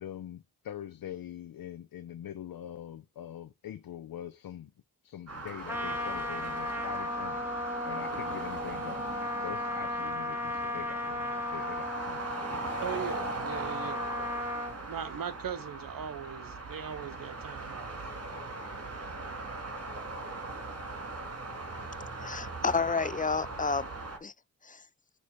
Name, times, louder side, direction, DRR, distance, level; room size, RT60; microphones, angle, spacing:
voice 1, 0.0-4.7 5.0-12.8, left 11 dB, 70° left, 0.7 m, -44 dB
sound 1, 5.3-24.2, right 2 dB, 40° right, 2.7 m, -40 dB
Trumpet, 5.7-14.8, left 1 dB, 5° right, 2.3 m, -35 dB
voice 2, 12.8-14.1 14.9-17.9, right 8 dB, 65° right, 0.9 m, -39 dB
voice 3, 22.2-23.9 24.2-24.3 24.6-24.8, left 4 dB, 25° left, 0.5 m, -30 dB
6.5 x 3.1 x 5.5 m
supercardioid pair, 45°, 37 cm